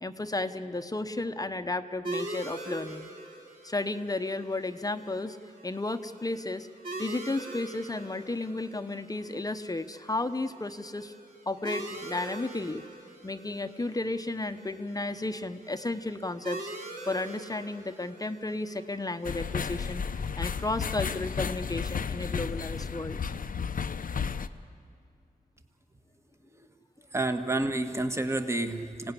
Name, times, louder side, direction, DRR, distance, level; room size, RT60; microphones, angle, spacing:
voice 1, 0.0-3.1 3.6-5.4 5.6-6.7 7.0-11.1 11.5-12.8 13.2-16.7 17.1-20.0 20.4-23.2, left 2 dB, 25° left, 8 dB, 1.0 m, -33 dB
sound 1, 2.0-21.2, right 2 dB, 60° right, 3.3 m, -44 dB
sound 2, 19.2-24.5, left 6 dB, 60° left, 0.8 m, -33 dB
voice 2, 27.1-29.1, right 2 dB, 15° right, 7 dB, 1.5 m, -29 dB
26.0 x 17.5 x 9.9 m, 2.4 s
wide cardioid pair, 85°, 16 cm